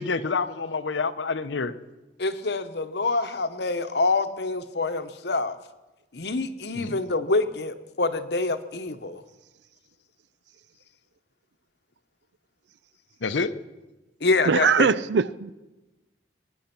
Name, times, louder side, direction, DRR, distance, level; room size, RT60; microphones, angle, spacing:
voice 1, 0.0-1.7 6.7-7.0 13.2-13.5, left 4 dB, 85° left, 0.8 m, -28 dB
voice 2, 2.2-5.6 6.1-9.2 14.2-15.0, left 3 dB, 65° left, 1.0 m, -26 dB
voice 3, 14.5-15.5, right 5 dB, 70° right, 0.5 m, -21 dB
23.0 x 10.0 x 5.9 m
head